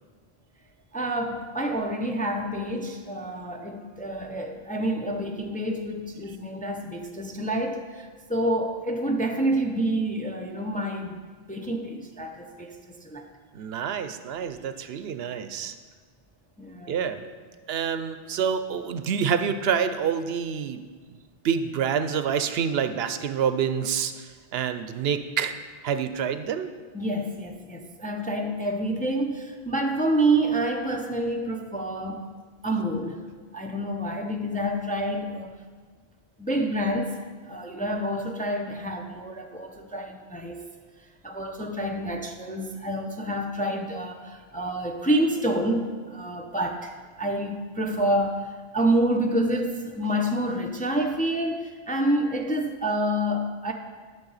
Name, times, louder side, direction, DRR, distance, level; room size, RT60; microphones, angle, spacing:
voice 1, 0.9-11.2 11.5-13.3 16.6-17.1 26.9-32.3 32.6-33.2 33.5-35.5 36.4-40.7 41.2-46.9 47.2-53.7, right 1 dB, 10° left, 2 dB, 0.5 m, -28 dB
voice 2, 13.5-15.7 16.9-17.2 17.7-20.8 21.4-25.5 25.8-26.7, right 7 dB, 75° right, 10 dB, 0.8 m, -27 dB
11.5 x 7.0 x 4.0 m, 1.5 s
omnidirectional pair, 1.0 m